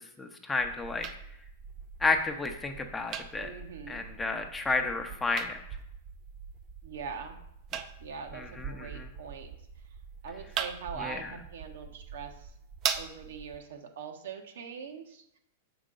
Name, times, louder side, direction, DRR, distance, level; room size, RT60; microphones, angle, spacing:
voice 1, 0.2-1.1 2.0-3.5 3.9-5.6 8.3-9.1 11.0-11.2, left 3 dB, 10° left, 5 dB, 0.6 m, -31 dB
sound 1, 0.6-13.6, right 7 dB, 30° right, 0.4 m, -41 dB
voice 2, 3.3-4.0 6.8-7.4 8.0-9.5 10.2-12.5 12.9-15.4, right 6 dB, 75° right, 5 dB, 0.9 m, -42 dB
6.3 x 5.1 x 3.8 m, 0.77 s
hypercardioid pair, 135°, 0 cm